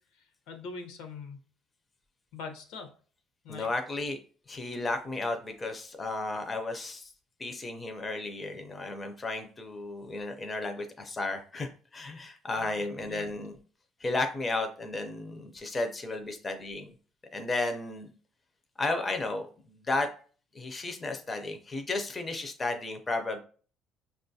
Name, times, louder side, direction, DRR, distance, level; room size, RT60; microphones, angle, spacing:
voice 1, 0.5-1.4 2.3-2.9 3.4-3.7 12.6-12.8 13.1-13.3, left 4 dB, 85° left, 5 dB, 0.7 m, -42 dB
voice 2, 3.5-4.2 4.5-7.1 7.4-13.6 14.0-16.9 17.3-18.1 18.8-20.1 20.5-23.4, left 2 dB, 15° left, 6 dB, 0.4 m, -33 dB
5.6 x 2.3 x 2.6 m, 0.40 s
cardioid pair, 170°, 0 cm